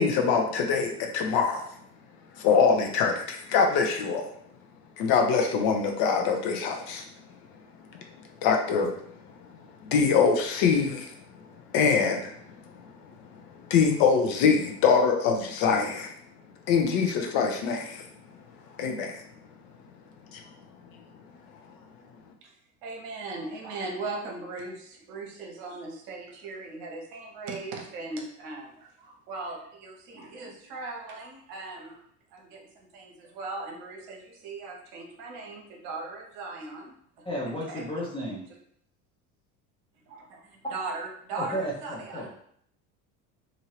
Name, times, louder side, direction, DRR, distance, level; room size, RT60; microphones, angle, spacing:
voice 1, 0.0-1.6 2.4-4.3 5.0-7.0 8.4-9.0 9.8-11.1 11.7-12.3 13.0-13.1 13.7-16.1 16.7-18.0 18.8-19.2 20.3-20.4, left 5 dB, 50° left, 3 dB, 0.7 m, -24 dB
voice 2, 22.8-32.0 32.3-36.9 37.7-37.8 40.1-42.3, right 3 dB, 55° right, 1 dB, 0.9 m, -38 dB
voice 3, 37.2-38.4 41.4-42.3, equal, 10° left, -6 dB, 0.6 m, -33 dB
2.7 x 2.7 x 3.0 m, 0.67 s
figure-of-eight pair, 70°, 46 cm